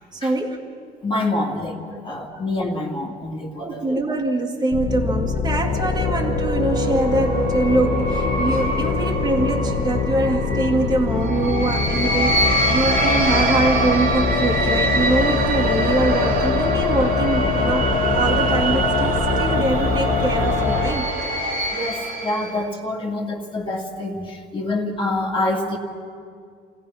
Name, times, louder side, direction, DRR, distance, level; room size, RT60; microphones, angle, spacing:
voice 1, 0.1-0.6 1.4-1.5 1.9-2.0 2.7-2.8 3.6-21.1, right 2 dB, 25° right, -1 dB, 2.0 m, -24 dB
voice 2, 1.0-1.8 2.0-4.0 11.8-11.9 21.7-25.8, left 2 dB, 30° left, -1 dB, 2.3 m, -26 dB
sound 1, 4.7-20.9, left 5 dB, 65° left, 1.5 m, -23 dB
sound 2, 5.8-22.6, right 2 dB, 60° right, 2.3 m, -25 dB
29.0 x 16.5 x 5.7 m, 2.1 s
cardioid pair, 110°, 17 cm